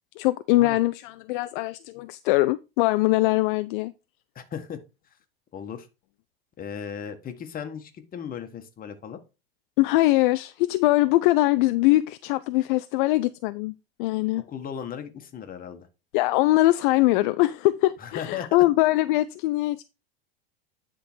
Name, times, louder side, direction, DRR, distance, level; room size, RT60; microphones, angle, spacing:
voice 1, 0.2-3.9 9.8-14.4 16.1-19.8, left 18 dB, 60° left, 0.5 m, -22 dB
voice 2, 4.3-4.8 5.5-5.9 6.6-9.2 14.5-15.9 18.0-18.6, left 8 dB, 30° left, 1.5 m, -36 dB
10.0 x 3.8 x 4.5 m
hypercardioid pair, 100°, 30 cm